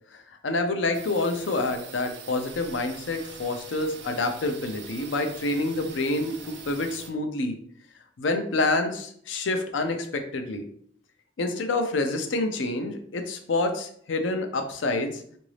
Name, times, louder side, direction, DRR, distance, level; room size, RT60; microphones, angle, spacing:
voice 1, 0.1-7.6 8.2-10.6 11.4-15.2, left 2 dB, 85° left, 6 dB, 0.5 m, -27 dB
sound 1, 0.9-7.1, right 6 dB, 65° right, 0.5 m, -44 dB
3.8 x 2.6 x 3.2 m, 0.62 s
head